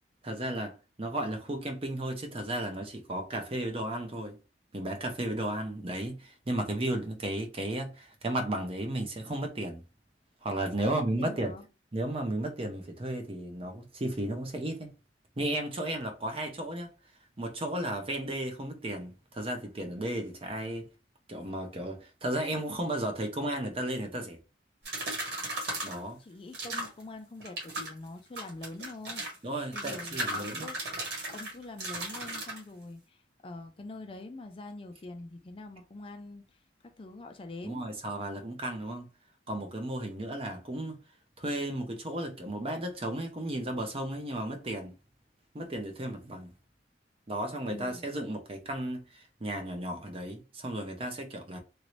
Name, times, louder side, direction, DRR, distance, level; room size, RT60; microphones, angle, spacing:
voice 1, 0.2-4.4 4.7-9.8 10.4-11.6 11.9-14.9 15.4-16.9 17.4-20.9 21.3-24.4 25.8-26.2 29.4-30.7 37.6-39.1 39.5-41.0 41.4-44.9 45.5-46.5 47.3-51.6, right 1 dB, 30° right, 0.6 m, -34 dB
voice 2, 10.8-11.7 26.2-29.2 29.7-30.8 31.3-37.8 47.7-48.0, left 2 dB, 30° left, 0.4 m, -44 dB
sound 1, 24.9-26.0 26.5-27.0 27.4-27.9 28.4-29.4 29.7-32.6, right 2 dB, 65° right, 1.4 m, -36 dB
3.0 x 2.6 x 3.0 m
head